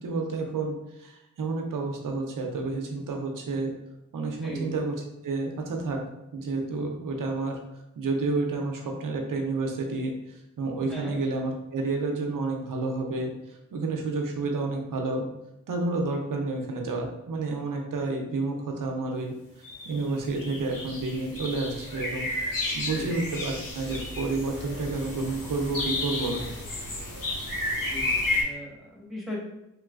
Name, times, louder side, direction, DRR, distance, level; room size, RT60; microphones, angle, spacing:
voice 1, 0.0-3.7 4.1-4.9 5.2-6.0 6.3-7.6 8.0-15.3 15.7-19.4 19.9-22.3 22.7-26.4, right 3 dB, 65° right, 2 dB, 0.7 m, -30 dB
voice 2, 4.3-4.8 10.9-11.1 22.7-23.3 27.8-29.4, left 1 dB, ahead, -4 dB, 1.3 m, -39 dB
sound 1, 19.6-20.0 20.4-28.4, left 2 dB, 70° left, 1.1 m, -32 dB
3.2 x 2.9 x 2.4 m, 0.90 s
cardioid pair, 50°, 34 cm